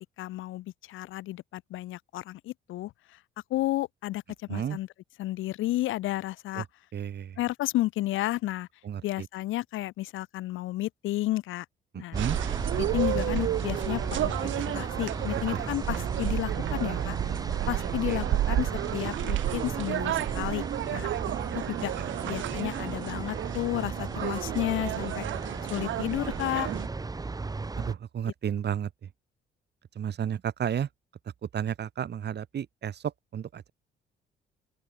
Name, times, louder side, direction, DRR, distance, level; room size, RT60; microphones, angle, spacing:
voice 1, 0.2-2.9 3.5-4.2 4.5-4.9 5.2-6.6 7.4-8.7 9.0-11.6 12.0-12.2 12.8-17.2 17.7-20.6 20.9-21.1 21.5-21.9 22.2-25.2 25.7-26.7, left 16 dB, 85° left, 1.0 m, -32 dB
voice 2, 4.5-4.8 6.6-6.7 6.9-7.4 8.8-9.3 11.9-12.4 15.5-15.6 18.1-18.2 22.0-22.1 27.7-29.1 29.9-30.9 31.4-33.7, right 9 dB, 55° right, 3.9 m, -32 dB
sound 1, 12.1-27.9, right 3 dB, 20° right, 0.9 m, -36 dB
sound 2, 12.2-26.9, right 13 dB, 75° right, 1.0 m, -31 dB
open air
cardioid pair, 90°, 20 cm